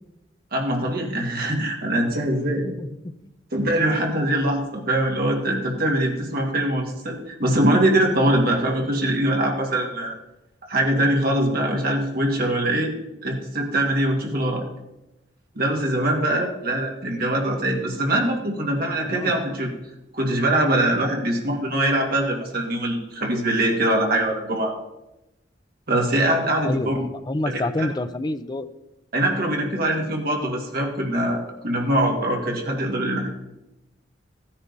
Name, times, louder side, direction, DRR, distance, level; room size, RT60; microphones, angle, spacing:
voice 1, 0.5-2.7 3.5-10.1 10.7-12.9 13.2-14.6 15.6-19.7 20.1-24.7 25.9-27.0 27.5-27.9 29.1-33.3, right 1 dB, 55° right, 1 dB, 2.2 m, -23 dB
voice 2, 2.6-3.3 19.1-19.3 26.6-28.7, left 2 dB, 25° left, 11 dB, 0.5 m, -28 dB
15.0 x 9.7 x 4.1 m, 0.94 s
head